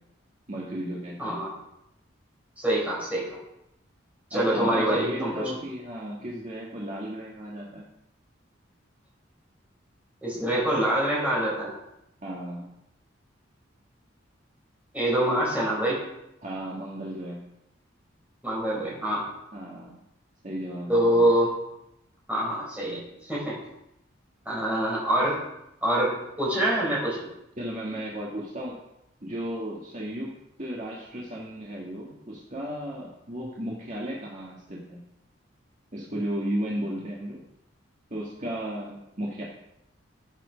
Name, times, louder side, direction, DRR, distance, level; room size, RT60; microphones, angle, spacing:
voice 1, 0.5-1.4 4.3-7.9 12.2-12.7 16.4-17.4 19.5-19.9 20.4-21.3 27.6-28.8 29.2-35.0 35.9-37.4 38.1-39.4, equal, 35° right, -4 dB, 2.0 m, -34 dB
voice 2, 1.2-1.5 2.6-3.4 4.3-5.5 10.2-11.7 14.9-16.0 18.4-19.2 20.9-21.5 22.3-23.6 24.4-25.4 25.8-27.3, right 1 dB, 10° right, -6 dB, 5.1 m, -25 dB
14.5 x 7.6 x 5.2 m, 0.84 s
head